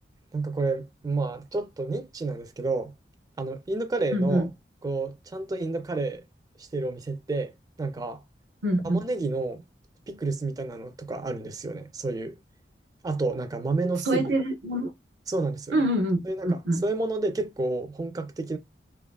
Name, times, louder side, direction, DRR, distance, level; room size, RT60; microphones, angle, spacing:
voice 1, 0.3-2.9 3.4-4.5 4.8-6.2 6.6-7.5 7.8-8.2 8.8-9.6 10.1-12.4 13.0-14.3 15.3-15.8 16.3-18.6, right 3 dB, 20° right, 0.3 m, -30 dB
voice 2, 4.1-4.5 8.6-9.0 14.0-14.9 15.7-16.8, right 1 dB, 80° right, 0.5 m, -25 dB
2.9 x 2.3 x 2.2 m
head